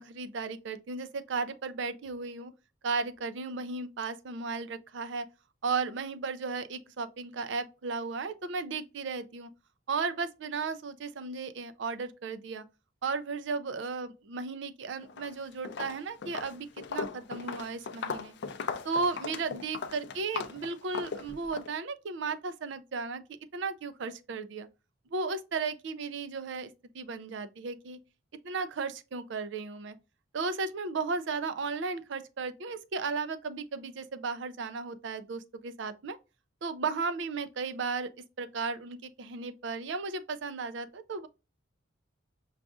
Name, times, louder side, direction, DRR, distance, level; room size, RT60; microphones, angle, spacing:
voice 1, 0.0-2.5 2.8-5.3 5.6-9.5 9.9-12.6 13.0-18.3 18.8-23.2 23.5-24.7 25.1-26.7 26.9-28.0 28.4-30.0 30.3-36.2 36.6-38.1 38.4-41.3, right 4 dB, 65° right, 0.5 m, -35 dB
Walk footsteps, 15.0-15.3 15.6-21.7, left 5 dB, 60° left, 0.4 m, -38 dB
6.0 x 2.4 x 2.4 m
head